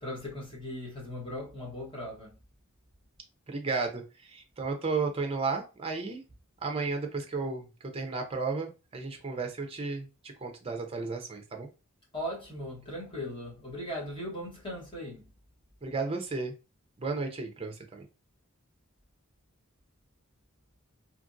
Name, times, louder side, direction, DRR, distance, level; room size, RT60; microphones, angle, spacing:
voice 1, 0.0-2.3 12.1-15.2, left 1 dB, 25° left, 0.9 m, -38 dB
voice 2, 3.5-6.2 6.6-7.7 7.9-10.1 10.4-11.7 15.8-16.5 17.0-18.0, right 4 dB, 25° right, 0.5 m, -33 dB
2.8 x 2.5 x 2.5 m
head